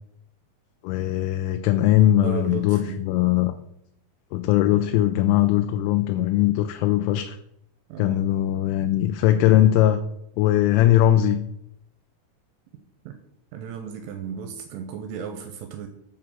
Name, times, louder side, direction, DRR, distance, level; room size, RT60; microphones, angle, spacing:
voice 1, 0.8-3.5 4.3-7.4 8.0-10.0 10.4-11.4, left 12 dB, 85° left, 8 dB, 2.8 m, -20 dB
voice 2, 2.2-3.1 7.9-8.2 13.1-13.2 13.5-15.9, right 7 dB, 80° right, 6 dB, 3.2 m, -35 dB
7.9 x 4.8 x 7.2 m, 0.77 s
omnidirectional pair, 5.9 m